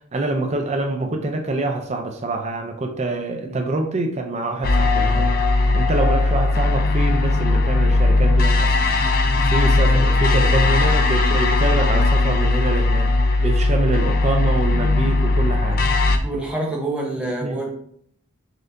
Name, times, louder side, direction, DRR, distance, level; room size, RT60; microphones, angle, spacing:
voice 1, 0.1-8.7 9.1-9.2 9.5-13.1 13.4-15.8 17.4-17.6, right 2 dB, 30° right, 4 dB, 0.4 m, -25 dB
sound 1, 4.6-16.2, left 2 dB, 45° left, 0.4 m, -18 dB
voice 2, 16.2-17.7, right 2 dB, 5° right, -2 dB, 0.8 m, -27 dB
4.2 x 3.8 x 2.5 m, 0.66 s
head